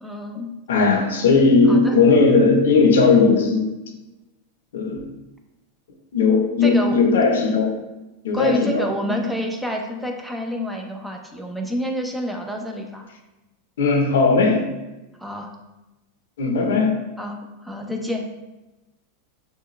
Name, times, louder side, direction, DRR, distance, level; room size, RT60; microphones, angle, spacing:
voice 1, 0.0-0.5 1.7-1.9 6.6-7.0 8.3-13.1 15.2-15.5 17.2-18.3, equal, 5° right, 2 dB, 0.6 m, -28 dB
voice 2, 0.7-3.8 4.7-5.1 6.1-7.8 8.2-9.2 13.8-14.8 16.4-17.1, left 4 dB, 90° left, 4 dB, 0.8 m, -17 dB
6.5 x 2.3 x 3.1 m, 1.0 s
supercardioid pair, 140°, 0 cm